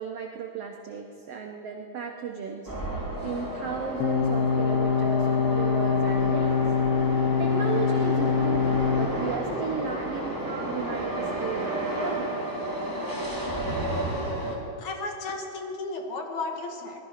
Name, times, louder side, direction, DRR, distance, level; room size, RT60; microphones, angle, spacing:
voice 1, 0.0-6.6 7.4-12.3, right 5 dB, 85° right, 3 dB, 1.3 m, -35 dB
sound 1, 2.7-14.6, right 1 dB, 5° right, 2.3 m, -32 dB
sound 2, 4.0-9.1, left 6 dB, 80° left, 2.7 m, -24 dB
voice 2, 14.8-17.0, left 3 dB, 60° left, 3 dB, 2.5 m, -34 dB
20.0 x 13.0 x 5.7 m, 2.5 s
omnidirectional pair, 4.0 m